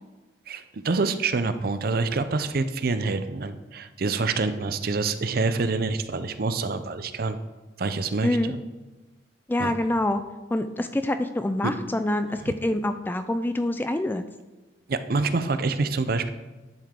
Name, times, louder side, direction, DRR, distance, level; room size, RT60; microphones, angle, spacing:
voice 1, 0.5-7.4 7.8-8.6 9.6-9.7 11.6-11.7 12.3-12.5 14.9-16.3, right 3 dB, 55° right, 10 dB, 0.5 m, -26 dB
voice 2, 8.2-8.5 9.5-10.2 10.5-14.2, left 1 dB, 10° left, 9 dB, 0.3 m, -26 dB
11.0 x 6.7 x 3.7 m, 1.2 s
head